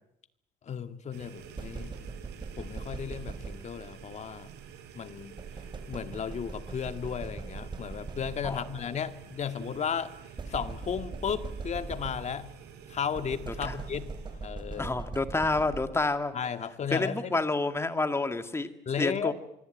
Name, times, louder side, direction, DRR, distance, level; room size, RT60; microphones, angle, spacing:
voice 1, 0.6-2.0 2.6-4.5 4.9-5.4 5.9-10.1 10.5-12.5 12.9-14.9 16.3-17.4 18.9-19.3, left 7 dB, 45° left, 10 dB, 2.0 m, -34 dB
sound 1, 1.1-14.5, right 8 dB, 85° right, 5.4 m, -49 dB
sound 2, 1.6-4.0 5.4-8.9 10.4-12.6 13.1-16.2, right 4 dB, 25° right, 3.6 m, -41 dB
voice 2, 14.8-16.3 16.9-18.7 19.0-19.3, left 2 dB, 15° left, 9 dB, 2.2 m, -28 dB
25.0 x 23.5 x 9.2 m, 0.78 s
cardioid pair, 110°, 17 cm